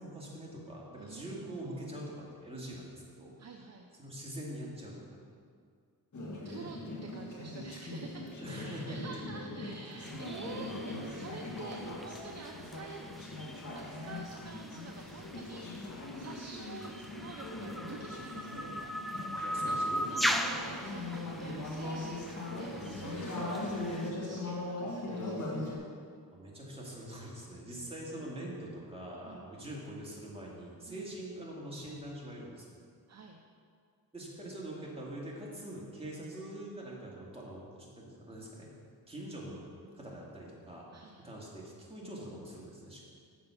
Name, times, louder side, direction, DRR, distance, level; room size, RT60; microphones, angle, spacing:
voice 1, 0.0-3.4 4.0-5.2 8.4-9.0 19.4-20.1 26.3-32.7 34.1-38.7 39.1-39.6 39.9-40.8 41.2-43.1, right 1 dB, 15° right, -5 dB, 2.3 m, -44 dB
voice 2, 1.0-1.9 3.4-3.9 6.4-13.0 13.7-25.9 29.2-29.5 30.9-31.0 33.1-33.4 40.9-41.3, right 4 dB, 45° right, 2 dB, 0.7 m, -49 dB
Conversation / Chatter, 6.1-25.8, left 2 dB, 50° left, 1.8 m, -40 dB
sound 1, 10.0-24.1, equal, ahead, 0.4 m, -39 dB
7.5 x 6.8 x 5.8 m, 2.2 s
cardioid pair, 90°, 38 cm